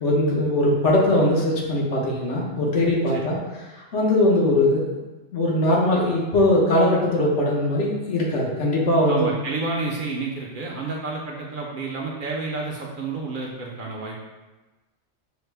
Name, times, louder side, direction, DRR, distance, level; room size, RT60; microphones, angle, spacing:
voice 1, 0.0-3.4 3.7-5.0 5.3-9.3, left 1 dB, 85° left, -3 dB, 1.2 m, -20 dB
voice 2, 9.1-14.2, right 3 dB, 55° right, -2 dB, 0.6 m, -30 dB
5.6 x 2.0 x 3.3 m, 1.1 s
omnidirectional pair, 1.2 m